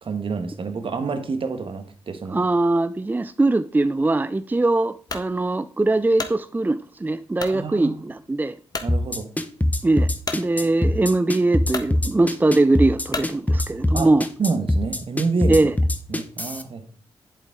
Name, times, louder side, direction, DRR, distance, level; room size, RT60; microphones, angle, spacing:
voice 1, 0.0-2.4 7.5-8.0 8.8-9.3 10.6-10.7 13.9-14.1 14.4-15.6 16.1-16.8, right 4 dB, 55° right, 1.5 m, -28 dB
voice 2, 2.3-8.6 9.8-14.2 15.5-15.7, right 2 dB, 15° right, 0.4 m, -21 dB
sound 1, 5.1-5.3 5.9-6.4 7.4-7.6 8.2-8.3 8.7-8.9 10.3-10.4 11.2-11.3 11.7-11.9 13.1-13.4, left 3 dB, 40° left, 1.4 m, -31 dB
sound 2, 8.9-16.6, left 1 dB, 15° left, 1.1 m, -22 dB
8.0 x 7.6 x 3.7 m
supercardioid pair, 45°, 11 cm